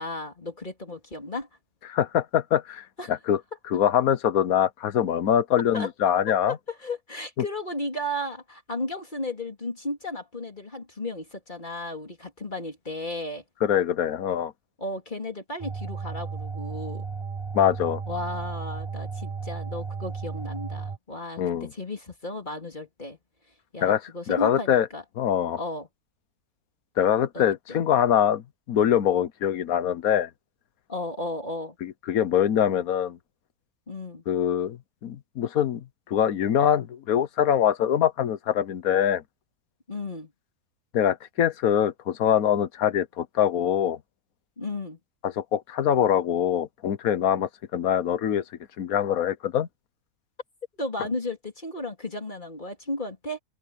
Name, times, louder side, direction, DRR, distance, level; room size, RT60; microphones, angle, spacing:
voice 1, 0.0-1.5 3.0-3.1 5.7-5.9 6.5-13.4 14.8-17.1 18.1-23.2 23.7-25.0 25.6-25.9 27.3-27.4 30.9-31.8 33.9-34.2 39.9-40.3 44.6-45.0 50.8-53.4, left 1 dB, 35° left, 3.4 m, -34 dB
voice 2, 1.9-3.4 3.7-6.6 13.6-14.5 17.5-18.0 21.4-21.7 23.8-24.0 24.3-24.9 25.2-25.6 27.0-30.3 31.8-33.2 34.3-34.8 35.0-39.2 40.9-44.0 45.2-48.4 48.8-49.7, left 9 dB, 80° left, 1.4 m, -24 dB
sound 1, 15.6-21.0, right 5 dB, 25° right, 0.9 m, -34 dB
open air
omnidirectional pair, 1.5 m